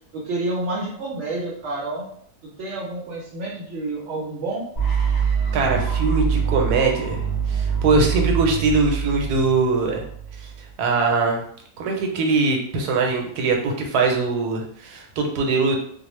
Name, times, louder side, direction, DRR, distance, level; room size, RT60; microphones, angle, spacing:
voice 1, 0.1-2.1 2.4-4.6, right 2 dB, 60° right, -4 dB, 0.8 m, -29 dB
sound 1, 4.7-10.7, right 7 dB, 45° left, 0.6 m, -24 dB
voice 2, 5.5-7.2 7.5-10.0 10.4-10.5 10.8-11.4 11.8-15.8, right 3 dB, 80° right, 1 dB, 1.1 m, -21 dB
2.5 x 2.0 x 3.0 m, 0.63 s
omnidirectional pair, 1.6 m